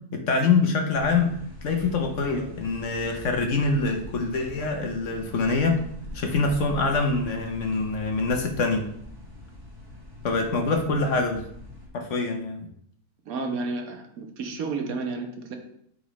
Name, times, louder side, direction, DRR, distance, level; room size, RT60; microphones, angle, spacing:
voice 1, 0.1-1.3 1.6-5.8 6.1-8.8 10.2-11.4 11.9-12.7, left 3 dB, 60° left, 3 dB, 1.0 m, -25 dB
sound 1, 0.9-11.9, left 1 dB, 15° right, 1.3 m, -42 dB
voice 2, 13.3-15.6, right 3 dB, 70° right, 4 dB, 1.3 m, -31 dB
8.3 x 3.9 x 3.1 m, 0.69 s
omnidirectional pair, 1.6 m